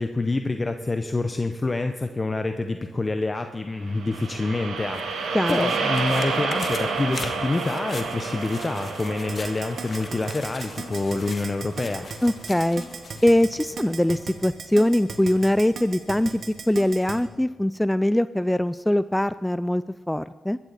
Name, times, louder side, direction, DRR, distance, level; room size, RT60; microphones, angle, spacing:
voice 1, 0.0-5.0 5.5-12.1, left 2 dB, 35° left, 7 dB, 0.8 m, -27 dB
sound 1, 3.8-12.2, right 4 dB, 85° right, 1.8 m, -30 dB
sound 2, 4.8-13.5 13.9-14.0, left 4 dB, 55° left, 1.6 m, -41 dB
voice 2, 5.3-5.7 12.2-12.8 13.2-16.4 16.7-20.6, left 1 dB, 10° left, 15 dB, 0.4 m, -22 dB
Keyboard (musical), 9.3-17.2, right 5 dB, 70° right, 1.5 m, -35 dB
16.0 x 13.0 x 4.1 m, 1.4 s
supercardioid pair, 45°, 0 cm